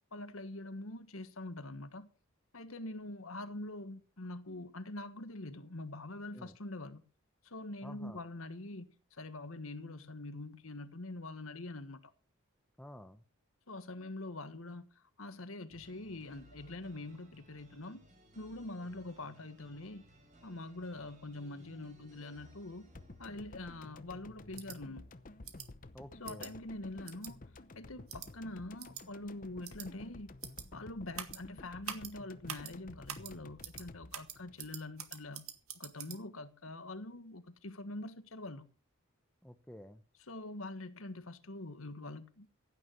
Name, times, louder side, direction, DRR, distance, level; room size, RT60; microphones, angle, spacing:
voice 1, 0.1-2.1 2.5-7.0 7.4-12.1 13.7-18.0 18.3-20.0 20.4-22.9 23.2-25.0 26.2-27.4 27.7-30.3 30.7-35.4 35.7-38.6 40.3-42.5, left 2 dB, 75° left, 1.5 m, -44 dB
voice 2, 7.8-8.2 12.8-13.2 25.9-26.6 39.4-40.0, left 1 dB, 5° left, 0.8 m, -50 dB
sound 1, 15.7-25.5, right 1 dB, 35° right, 4.9 m, -61 dB
sound 2, 22.9-35.3 35.6-35.7, left 2 dB, 40° left, 0.8 m, -53 dB
sound 3, 24.6-24.8 25.4-25.7 26.3-26.5 27.1-27.3 28.1-28.3 28.8-29.0 29.6-29.9 30.4-30.6 31.1-31.4 31.8-32.1 32.5-32.7 33.1-33.3 33.6-33.8 34.1-36.2, right 9 dB, 85° right, 2.0 m, -44 dB
16.0 x 9.5 x 5.7 m
head